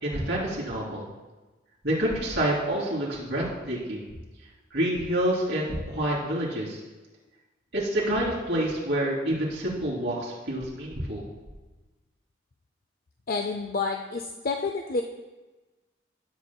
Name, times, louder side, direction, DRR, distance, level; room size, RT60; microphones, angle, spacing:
voice 1, 0.0-1.1 1.8-4.0 4.7-6.8 7.7-11.3, right 1 dB, 60° right, -7 dB, 2.8 m, -28 dB
voice 2, 13.3-15.0, left 4 dB, 45° left, 4 dB, 0.4 m, -29 dB
17.0 x 7.1 x 2.2 m, 1.2 s
head